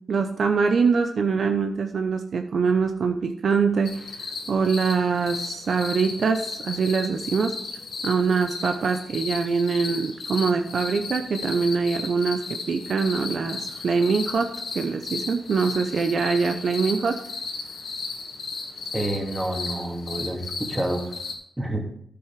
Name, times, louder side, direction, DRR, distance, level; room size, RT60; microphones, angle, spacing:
voice 1, 0.1-4.0 4.5-7.5 8.0-12.4 12.7-14.5 14.7-17.2, right 5 dB, 65° right, 6 dB, 0.6 m, -23 dB
sound 1, 3.9-21.4, left 4 dB, 70° left, 1.9 m, -35 dB
voice 2, 18.9-21.0 21.6-21.9, right 1 dB, 15° right, 2 dB, 2.3 m, -28 dB
9.6 x 7.0 x 4.8 m, 0.69 s
supercardioid pair, 50°, 0 cm